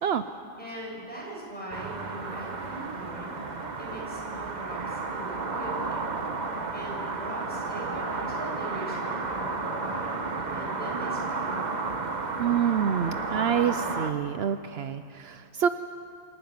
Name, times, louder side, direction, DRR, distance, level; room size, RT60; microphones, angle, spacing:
voice 1, 0.6-3.3 3.8-6.1 6.7-10.2 10.5-11.6, right 1 dB, 10° left, -4 dB, 7.2 m, -40 dB
sound 1, 1.7-14.1, right 3 dB, 40° right, 1.2 m, -32 dB
voice 2, 12.4-15.7, right 8 dB, 70° right, 10 dB, 0.9 m, -27 dB
26.0 x 11.5 x 9.5 m, 2.4 s
omnidirectional pair, 1.1 m